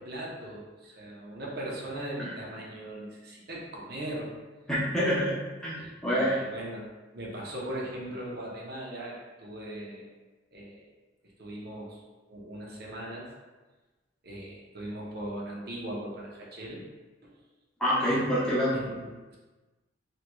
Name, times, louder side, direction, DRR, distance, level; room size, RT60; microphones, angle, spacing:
voice 1, 0.0-4.3 5.8-6.8 7.1-10.1 10.5-10.8 11.4-12.0 12.3-13.3 14.2-16.8 18.1-18.3 18.7-19.4, right 1 dB, 55° right, -4 dB, 0.8 m, -39 dB
voice 2, 4.7-5.3 5.6-6.4 17.8-18.8, equal, 5° left, -10 dB, 0.8 m, -26 dB
3.6 x 3.0 x 2.2 m, 1.2 s
head